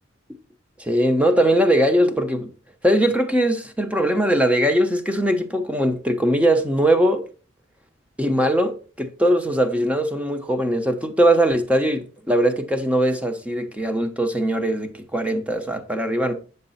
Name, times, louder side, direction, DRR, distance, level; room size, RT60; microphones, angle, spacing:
voice 1, 0.8-2.5 2.8-7.2 8.2-16.3, right 1 dB, 5° right, 1.0 m, -20 dB
9.1 x 6.7 x 4.3 m
head